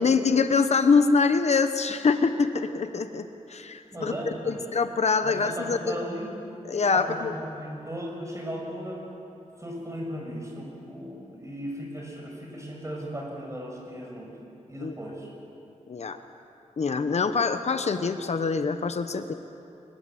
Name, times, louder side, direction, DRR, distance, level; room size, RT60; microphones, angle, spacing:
voice 1, 0.0-4.1 4.5-6.0 6.7-7.3 14.8-14.9 15.9-16.2 16.8-19.3, left 4 dB, 65° left, 9 dB, 1.0 m, -24 dB
voice 2, 3.9-4.6 5.2-6.3 6.9-9.1 9.6-14.3 14.7-15.3, equal, 25° right, -1 dB, 6.6 m, -36 dB
24.0 x 21.0 x 7.8 m, 2.8 s
wide cardioid pair, 105°, 12 cm